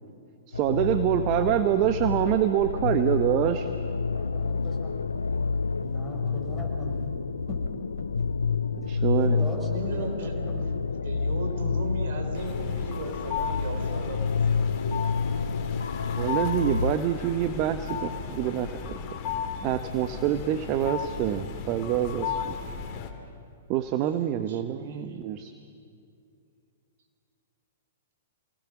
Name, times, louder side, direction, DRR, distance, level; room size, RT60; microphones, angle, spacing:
sound 1, 0.5-16.9, left 5 dB, 85° left, 0.6 m, -29 dB
voice 1, 0.5-3.7 8.8-9.4 16.2-19.0 19.6-22.5 23.7-25.5, right 11 dB, 40° right, 9 dB, 1.0 m, -26 dB
voice 2, 4.1-5.2 5.8-7.1 7.5-7.6 8.0-8.3 9.1-10.7, left 1 dB, ahead, -3 dB, 5.9 m, -40 dB
voice 3, 9.5-15.4 24.5-25.2, right 2 dB, 60° right, 4 dB, 4.0 m, -37 dB
sound 2, 12.3-23.1, left 7 dB, 40° left, 2.6 m, -35 dB
28.5 x 19.5 x 6.1 m, 2.4 s
hypercardioid pair, 120°, 0 cm